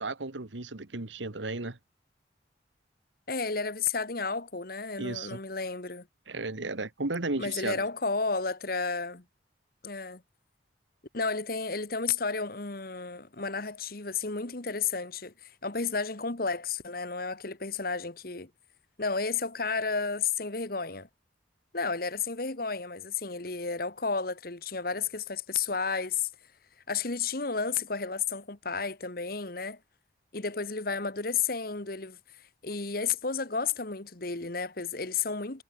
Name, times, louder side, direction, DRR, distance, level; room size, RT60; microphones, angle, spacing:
voice 1, 0.0-1.8 5.0-5.4 6.3-7.8, right 2 dB, 85° right, 1.7 m, -34 dB
voice 2, 3.3-6.1 7.4-9.2 9.8-10.2 11.1-18.5 19.0-21.1 21.7-26.3 26.9-29.8 30.3-32.2 32.6-35.6, left 5 dB, 50° left, 1.6 m, -32 dB
head